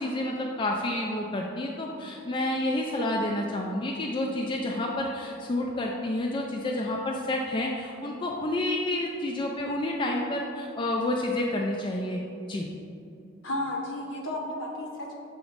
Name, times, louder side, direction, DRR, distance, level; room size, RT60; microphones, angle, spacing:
voice 1, 0.0-12.2 12.5-12.7, left 1 dB, 25° left, -1 dB, 0.3 m, -29 dB
voice 2, 13.4-15.1, left 1 dB, 65° left, -1 dB, 1.1 m, -33 dB
7.0 x 3.0 x 5.0 m, 2.6 s
head